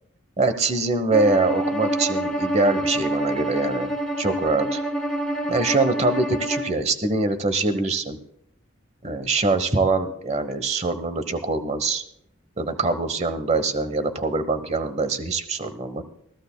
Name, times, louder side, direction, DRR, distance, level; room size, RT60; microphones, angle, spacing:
voice 1, 0.4-3.9 4.2-4.8 5.5-8.2 9.0-12.0 12.6-16.0, right 3 dB, 30° right, 10 dB, 1.0 m, -23 dB
Bowed string instrument, 1.1-6.7, right 1 dB, 5° left, 3.2 m, -27 dB
20.5 x 15.0 x 2.2 m, 0.71 s
head